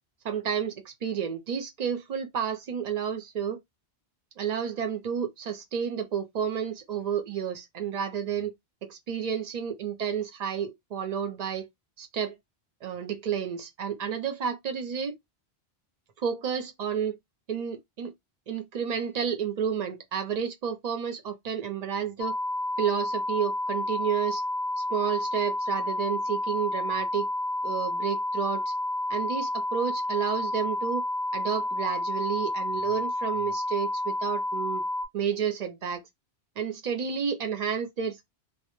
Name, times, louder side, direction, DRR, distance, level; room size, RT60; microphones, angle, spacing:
voice 1, 0.2-3.6 4.4-8.5 8.8-11.7 12.0-12.4 12.8-15.2 16.2-17.2 17.5-18.1 18.5-22.3 22.8-24.4 24.8-27.3 27.6-28.7 29.1-31.0 31.3-34.8 35.1-36.0 36.6-38.2, right 7 dB, 50° right, 0.6 m, -31 dB
sound 1, 22.2-35.1, left 1 dB, 85° left, 0.8 m, -30 dB
2.0 x 2.0 x 2.9 m
omnidirectional pair, 1.1 m